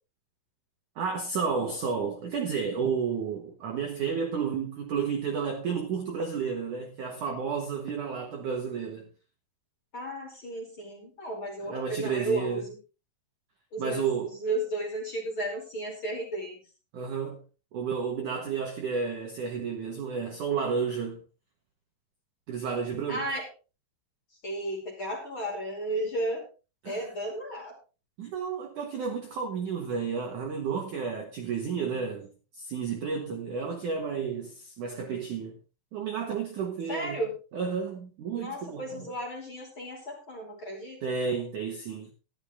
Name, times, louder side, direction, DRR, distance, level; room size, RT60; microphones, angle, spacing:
voice 1, 1.0-9.1 11.6-12.6 13.8-14.3 16.9-17.4 17.7-21.2 22.5-23.3 26.8-27.0 28.2-32.3 32.5-35.6 35.9-37.2 37.5-39.1 41.0-42.1, right 6 dB, 65° right, 2.1 m, -31 dB
voice 2, 9.9-12.8 13.7-14.0 14.4-16.6 23.1-23.5 24.4-26.4 26.8-27.7 36.9-37.4 38.3-41.0, right 1 dB, 30° left, 3.0 m, -33 dB
13.0 x 11.5 x 3.6 m
omnidirectional pair, 5.5 m